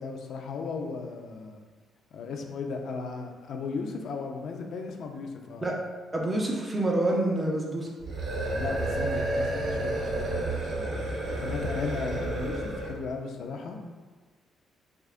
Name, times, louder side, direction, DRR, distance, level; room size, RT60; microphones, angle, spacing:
voice 1, 0.0-1.6 2.1-5.7 8.5-11.0 11.4-13.8, left 4 dB, 70° left, 3 dB, 0.5 m, -36 dB
voice 2, 6.1-7.9, right 1 dB, 25° right, -1 dB, 0.7 m, -27 dB
sound 1, 8.0-13.0, right 1 dB, 60° right, 1.1 m, -30 dB
6.3 x 2.3 x 2.5 m, 1.4 s
cardioid pair, 90°, 0 cm